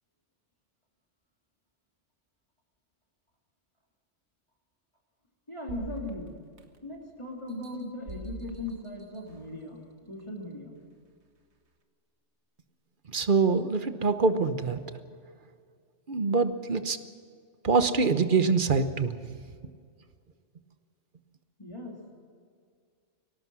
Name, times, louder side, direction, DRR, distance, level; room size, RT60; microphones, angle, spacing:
voice 1, 5.5-6.4 6.8-9.8 10.1-10.8 21.6-22.1, left 1 dB, 25° left, -2 dB, 3.0 m, -38 dB
sound 1, 5.7-7.0 7.5-9.6 10.2-10.3, right 2 dB, 65° right, 1.8 m, -44 dB
voice 2, 13.1-14.8 16.1-17.0 17.6-19.1, right 4 dB, 45° right, 10 dB, 1.2 m, -24 dB
24.0 x 18.0 x 6.2 m, 2.2 s
omnidirectional pair, 1.2 m